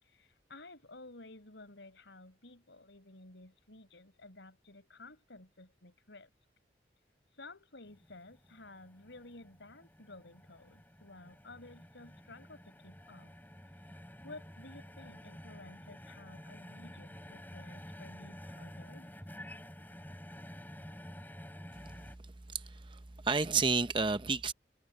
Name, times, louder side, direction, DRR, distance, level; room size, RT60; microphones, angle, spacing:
voice 1, 0.0-6.3 7.3-13.3 13.8-13.9 14.2-19.1, left 2 dB, 90° left, 4.9 m, -53 dB
sound 1, 7.9-22.2, equal, 10° left, 5.0 m, -50 dB
voice 2, 22.5-24.5, right 4 dB, 25° right, 0.7 m, -31 dB
head